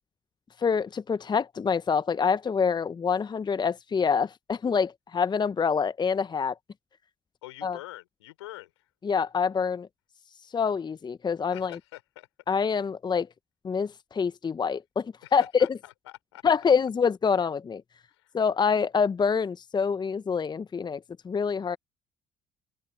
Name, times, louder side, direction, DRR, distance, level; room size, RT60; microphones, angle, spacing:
voice 1, 0.6-6.6 7.6-7.8 9.0-9.9 10.5-11.8 12.5-13.3 13.6-15.7 16.4-17.8 18.3-21.8, left 6 dB, 30° left, 0.8 m, -26 dB
voice 2, 7.4-8.9 11.5-12.3 15.2-16.4 18.1-18.4, left 17 dB, 80° left, 5.2 m, -45 dB
open air
hypercardioid pair, 50°, 14 cm